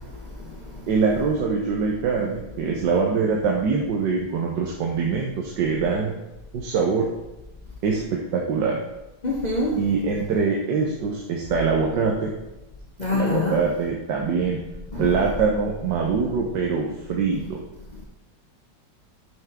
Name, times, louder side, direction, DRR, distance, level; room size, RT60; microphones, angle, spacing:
voice 1, 0.9-6.1 6.5-7.1 7.8-8.8 9.8-12.3 13.1-14.6 15.0-17.6, right 5 dB, 80° right, 1.5 m, -23 dB
voice 2, 9.2-9.9 13.0-13.6 14.9-15.1, left 2 dB, 35° left, 0.8 m, -25 dB
8.7 x 5.7 x 3.6 m
omnidirectional pair, 1.9 m